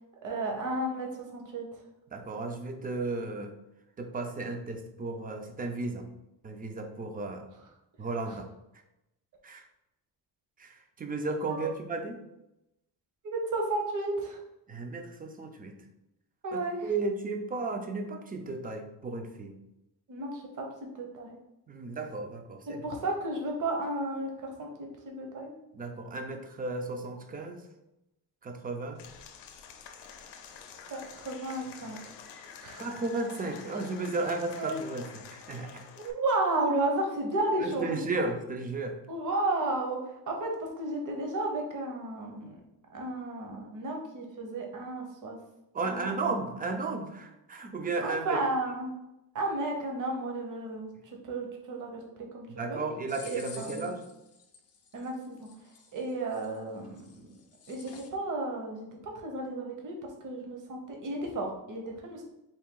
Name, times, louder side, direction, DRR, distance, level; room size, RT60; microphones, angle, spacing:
voice 1, 0.2-1.6 8.3-8.4 11.5-11.7 13.3-14.4 16.4-16.9 20.1-21.4 22.8-24.7 25.0-25.5 30.9-32.0 32.6-32.8 34.6-34.8 36.0-38.1 39.1-40.0 40.3-40.5 40.8-42.6 42.9-45.4 45.8-46.1 48.0-48.9 49.3-52.0 52.3-52.8 53.2-53.9 54.9-55.5 55.9-57.3 57.7-59.9 60.2-62.3, right 2 dB, 50° right, 1 dB, 0.9 m, -33 dB
voice 2, 2.1-3.5 4.0-6.1 6.4-7.5 8.0-8.5 9.4-9.6 10.6-12.2 14.7-15.7 16.5-19.5 21.7-22.8 25.7-27.6 28.4-29.0 32.8-35.8 37.6-39.0 45.7-48.4 52.6-54.0, right 3 dB, 25° right, 5 dB, 0.4 m, -34 dB
Applause / Crowd, 29.0-36.1, left 7 dB, 85° left, 0.6 m, -48 dB
sound 1, 53.1-58.1, left 6 dB, 40° left, 0.5 m, -51 dB
4.1 x 2.6 x 3.7 m, 0.90 s
wide cardioid pair, 155°, 41 cm